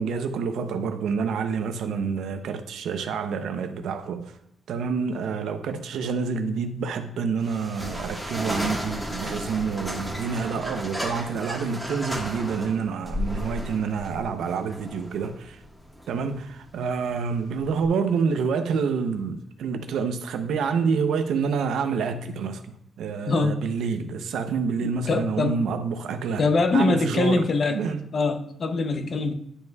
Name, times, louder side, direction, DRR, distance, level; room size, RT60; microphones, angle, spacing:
voice 1, 0.0-4.4 4.7-15.6 16.1-26.4 26.7-28.0, right 5 dB, 85° right, 0.7 m, -28 dB
sound 1, 7.4-17.9, equal, 5° left, 1.5 m, -34 dB
voice 2, 23.3-23.7 25.1-25.7 26.4-27.9 28.1-29.3, left 3 dB, 45° left, 0.6 m, -23 dB
11.5 x 5.3 x 2.3 m
cardioid pair, 140°, 0 cm